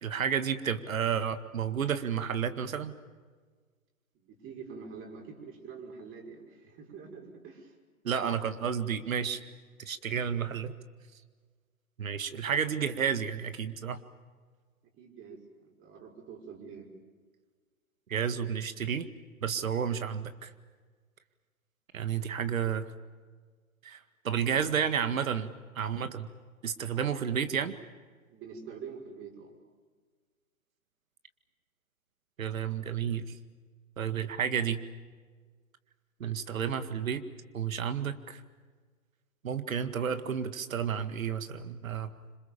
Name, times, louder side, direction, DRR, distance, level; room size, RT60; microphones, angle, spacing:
voice 1, 0.0-2.9 8.0-9.4 9.8-10.7 12.0-14.0 18.1-19.1 19.4-20.5 21.9-22.9 23.8-24.0 24.2-26.3 26.6-27.7 32.4-33.2 34.0-34.8 36.2-37.2 37.5-38.4 39.4-42.1, right 8 dB, 70° right, 11 dB, 2.0 m, -31 dB
voice 2, 4.1-7.7 10.0-10.1 15.0-16.9 28.3-29.5, right 5 dB, 30° right, 1 dB, 5.9 m, -46 dB
27.0 x 26.5 x 7.2 m, 1.5 s
figure-of-eight pair, 110°, 42 cm